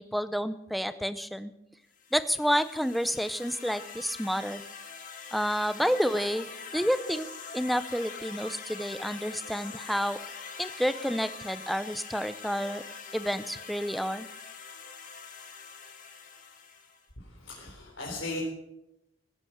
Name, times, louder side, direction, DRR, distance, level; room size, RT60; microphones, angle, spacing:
voice 1, 0.0-1.5 2.1-4.6 5.3-7.3 7.5-10.2 10.6-12.8 13.1-14.3, equal, ahead, 12 dB, 0.6 m, -29 dB
sound 1, 2.0-17.1, left 5 dB, 40° left, 1.9 m, -44 dB
voice 2, 17.2-18.4, left 2 dB, 75° left, -4 dB, 4.1 m, -38 dB
17.5 x 10.5 x 6.7 m, 0.89 s
head